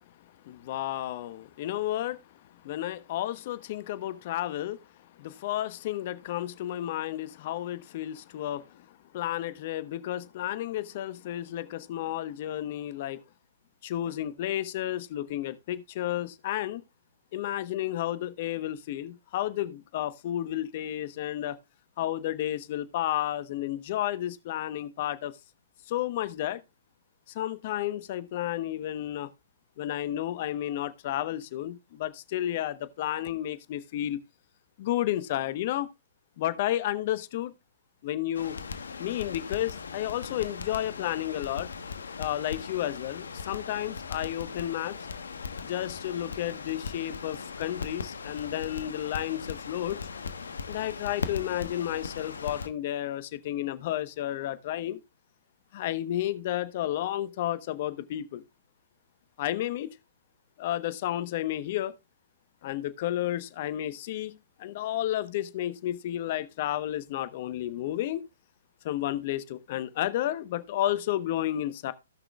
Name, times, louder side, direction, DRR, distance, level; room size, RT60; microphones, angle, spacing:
voice 1, 0.4-2.2 2.6-4.8 5.2-8.6 9.1-13.2 13.8-16.8 17.3-21.6 22.0-25.3 25.9-26.6 27.3-29.3 29.8-34.2 34.8-35.9 36.4-37.5 38.0-38.6 39.0-41.7 42.2-45.0 45.6-50.0 50.7-55.0 55.7-58.4 59.4-59.9 60.6-61.9 62.6-68.3 68.8-71.9, left 13 dB, 45° left, 1.0 m, -32 dB
Crackle, 38.3-52.7, left 5 dB, 75° left, 1.2 m, -39 dB
17.5 x 6.1 x 2.3 m
hypercardioid pair, 125°, 0 cm